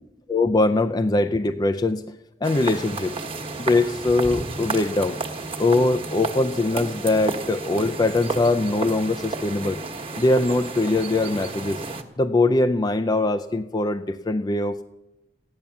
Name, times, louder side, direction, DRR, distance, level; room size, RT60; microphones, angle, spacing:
voice 1, 0.3-2.1 2.4-3.1 3.6-5.2 5.6-9.8 10.2-11.8 12.2-14.8, left 2 dB, 25° left, 7 dB, 0.4 m, -22 dB
sound 1, 2.4-12.0, right 3 dB, 30° right, 1.3 m, -32 dB
15.0 x 10.5 x 7.1 m, 0.95 s
head